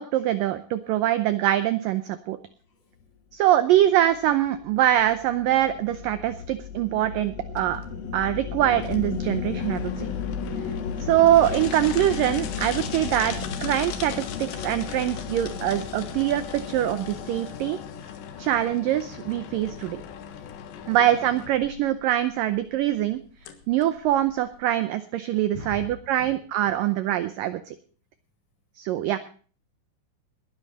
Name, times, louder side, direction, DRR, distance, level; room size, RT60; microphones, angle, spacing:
voice 1, 0.0-2.4 3.3-7.8 8.1-10.1 11.0-13.4 13.6-17.8 18.4-20.0 20.9-23.2 23.7-27.7 28.8-29.2, right 12 dB, 85° right, 13 dB, 1.9 m, -23 dB
sound 1, 4.1-18.5, left 6 dB, 65° left, 3.0 m, -35 dB
sound 2, 7.6-24.6, left 9 dB, 80° left, 3.7 m, -39 dB
voice 2, 10.7-11.1 20.0-20.5 20.8-21.0 25.5-25.9 26.2-26.3 26.6-26.7, left 1 dB, 45° left, 3 dB, 5.8 m, -42 dB
21.0 x 10.0 x 4.1 m, 0.41 s
omnidirectional pair, 5.0 m